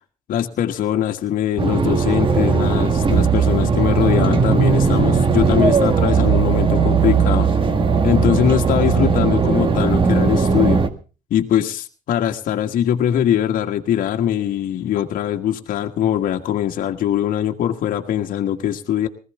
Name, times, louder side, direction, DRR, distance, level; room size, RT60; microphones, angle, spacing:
voice 1, 0.3-7.5 8.0-10.8 11.3-19.1, left 10 dB, 65° left, 4 dB, 1.7 m, -21 dB
sound 1, 1.6-10.9, right 5 dB, 35° right, 1.7 m, -17 dB
20.0 x 15.5 x 3.3 m, 0.35 s
cardioid pair, 95°, 15 cm